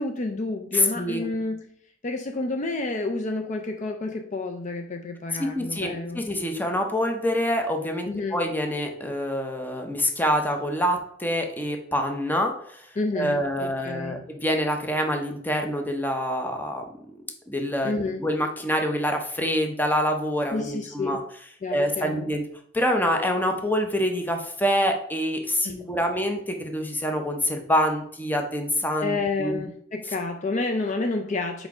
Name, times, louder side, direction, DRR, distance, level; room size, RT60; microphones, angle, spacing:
voice 1, 0.0-1.8 2.0-6.2 8.1-8.4 13.0-14.3 17.8-18.2 20.5-21.2 21.6-22.3 25.6-25.9 29.0-31.7, left 3 dB, 40° left, 5 dB, 0.5 m, -30 dB
voice 2, 0.7-1.2 5.4-12.9 13.2-16.8 17.5-17.9 18.2-21.2 21.7-22.4 22.7-29.6, equal, 10° left, 4 dB, 0.8 m, -26 dB
4.6 x 4.4 x 4.8 m, 0.65 s
head